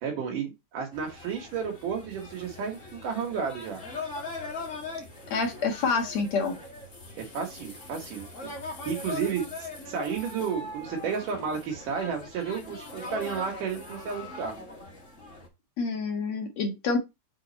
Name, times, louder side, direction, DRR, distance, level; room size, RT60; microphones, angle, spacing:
voice 1, 0.0-3.8 7.2-14.6, right 6 dB, 80° right, 1 dB, 3.0 m, -32 dB
sound 1, 0.9-15.5, left 3 dB, 25° left, 2.1 m, -41 dB
voice 2, 5.3-6.6 15.8-17.0, left 4 dB, 60° left, 3 dB, 2.7 m, -27 dB
8.1 x 4.1 x 4.0 m, 0.23 s
omnidirectional pair, 3.7 m